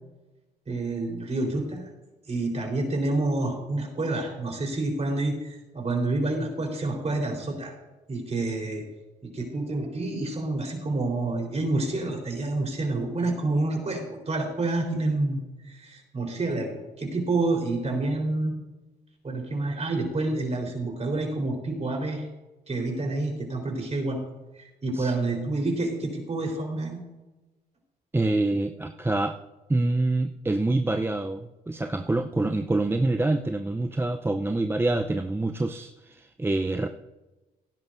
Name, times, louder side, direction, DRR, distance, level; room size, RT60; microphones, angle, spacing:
voice 1, 0.7-1.9 2.3-7.8 8.1-8.9 9.2-18.5 19.2-22.3 22.7-24.2 24.6-27.0, right 2 dB, 35° right, 1 dB, 4.0 m, -28 dB
voice 2, 28.1-29.4 29.7-36.9, right 2 dB, 10° right, 6 dB, 0.6 m, -26 dB
17.5 x 10.5 x 2.6 m, 1.1 s
supercardioid pair, 65°, 18 cm